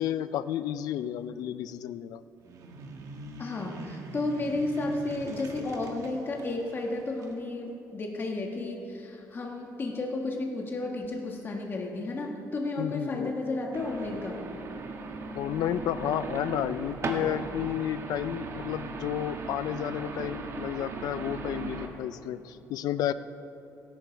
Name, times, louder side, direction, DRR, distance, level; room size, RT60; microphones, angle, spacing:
voice 1, 0.0-2.2 12.8-13.3 15.3-23.1, left 11 dB, 75° left, 14 dB, 0.5 m, -31 dB
sound 1, 2.4-7.4, right 2 dB, 60° right, 1.7 m, -44 dB
voice 2, 3.4-14.4, left 2 dB, 35° left, 0 dB, 1.6 m, -32 dB
sound 2, 13.7-21.9, right 4 dB, 45° right, 1.4 m, -37 dB
16.5 x 11.5 x 4.6 m, 2.8 s
cardioid pair, 110°, 6 cm